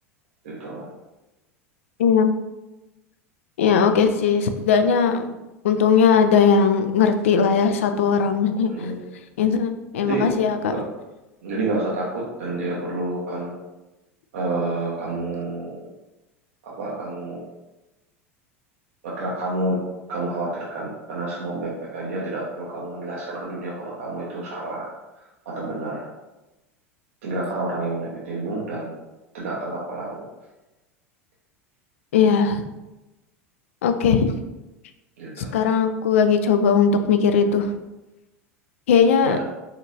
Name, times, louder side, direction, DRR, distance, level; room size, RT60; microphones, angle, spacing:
voice 1, 0.4-0.9 8.7-9.0 10.0-10.3 10.6-11.0 11.4-13.6 14.3-15.9 16.6-17.4 19.0-19.8 20.1-24.9 25.2-26.1 27.2-28.9 29.3-30.3 35.2-35.6 39.2-39.4, right 2 dB, 65° right, -5 dB, 0.9 m, -29 dB
voice 2, 2.0-2.3 3.6-5.3 5.6-8.7 9.4-10.7 32.1-32.6 33.8-34.3 35.5-37.7 38.9-39.4, left 6 dB, 65° left, 8 dB, 0.4 m, -18 dB
4.3 x 3.9 x 2.6 m, 1.0 s
figure-of-eight pair, 80°, 8 cm